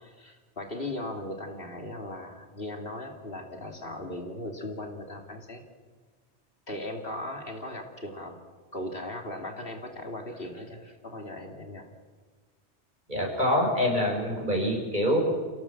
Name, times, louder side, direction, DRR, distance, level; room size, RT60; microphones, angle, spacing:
voice 1, 0.0-5.6 6.7-8.4 8.7-11.8, left 1 dB, 55° left, 2 dB, 3.1 m, -38 dB
voice 2, 13.1-15.2, left 1 dB, 45° right, 0 dB, 6.8 m, -25 dB
30.0 x 17.5 x 7.5 m, 1.5 s
omnidirectional pair, 1.1 m